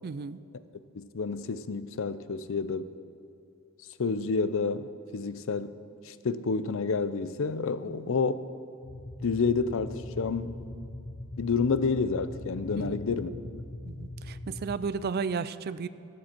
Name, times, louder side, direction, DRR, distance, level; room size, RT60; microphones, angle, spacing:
voice 1, 0.0-0.4 8.0-8.1 12.8-13.0 13.9-15.9, right 5 dB, 45° right, 15 dB, 0.4 m, -33 dB
voice 2, 0.9-2.9 4.0-5.7 6.1-8.4 9.2-10.6 11.4-13.3, left 4 dB, 65° left, 14 dB, 0.5 m, -29 dB
sound 1, 8.8-14.8, left 1 dB, 80° left, 1.1 m, -41 dB
13.5 x 11.5 x 4.4 m, 2.6 s
head